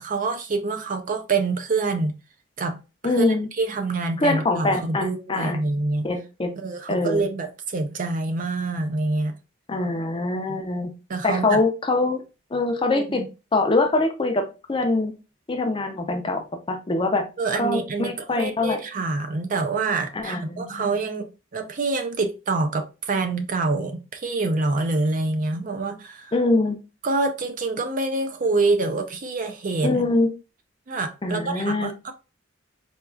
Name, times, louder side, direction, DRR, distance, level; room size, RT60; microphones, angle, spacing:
voice 1, 0.0-2.1 2.6-6.1 6.6-9.3 10.5-10.6 11.1-11.6 12.9-13.3 17.4-26.3 27.0-30.1 30.9-32.1, right 3 dB, 40° right, 0.4 m, -26 dB
voice 2, 3.0-3.5 4.2-5.6 6.0-6.5 6.9-7.2 9.7-10.9 11.2-12.2 12.5-13.2 13.5-15.1 15.5-17.3 17.6-18.8 20.1-20.9 26.3-26.8 29.8-30.3 31.2-31.9, left 2 dB, 25° left, 0.5 m, -23 dB
4.2 x 2.3 x 2.3 m
head